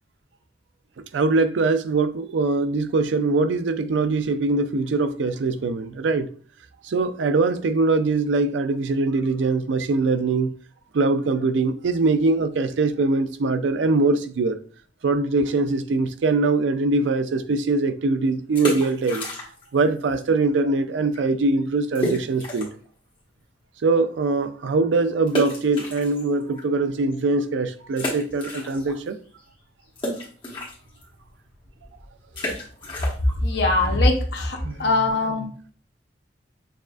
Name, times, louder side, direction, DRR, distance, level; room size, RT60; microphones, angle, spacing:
voice 1, 1.1-6.3 6.8-10.5 10.9-14.6 15.0-19.3 19.7-22.7 23.8-29.2 34.6-34.9, right 3 dB, 85° right, 0.4 m, -22 dB
sound 1, 18.4-19.8 20.0-20.1 20.7-20.9 21.1-21.2 21.9-22.9 23.3-23.4 25.3-26.6 27.1-27.2 27.9-29.1 29.4-34.9, left 1 dB, 30° left, 1.3 m, -32 dB
voice 2, 33.4-35.5, left 2 dB, 65° left, 0.8 m, -21 dB
6.6 x 2.4 x 2.4 m
head